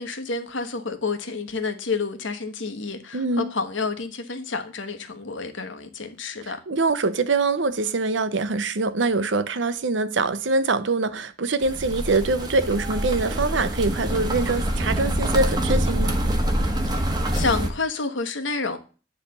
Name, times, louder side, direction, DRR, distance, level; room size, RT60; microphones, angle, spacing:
voice 1, 0.0-6.6 17.3-18.8, left 4 dB, 85° left, 1.2 m, -29 dB
voice 2, 3.1-3.5 6.4-16.2, right 3 dB, 75° right, 0.7 m, -24 dB
sound 1, 11.6-17.7, right 1 dB, 20° right, 1.0 m, -25 dB
9.9 x 3.3 x 6.6 m
head